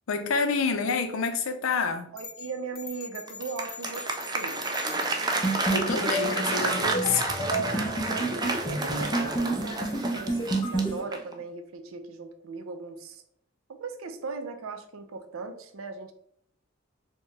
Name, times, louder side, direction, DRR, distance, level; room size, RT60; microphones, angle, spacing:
voice 1, 0.1-2.1 5.7-7.3 7.6-7.7, left 5 dB, 75° left, 0.5 m, -28 dB
voice 2, 2.1-4.1 4.3-4.7 6.0-6.2 7.6-13.2 13.7-16.1, right 4 dB, 80° right, 0.5 m, -39 dB
sound 1, 2.2-5.9, left 5 dB, 45° left, 1.0 m, -43 dB
Applause, 3.3-11.4, right 3 dB, 20° right, 0.4 m, -31 dB
sound 2, 5.4-11.0, right 2 dB, 25° left, 0.7 m, -29 dB
4.4 x 2.1 x 3.3 m
head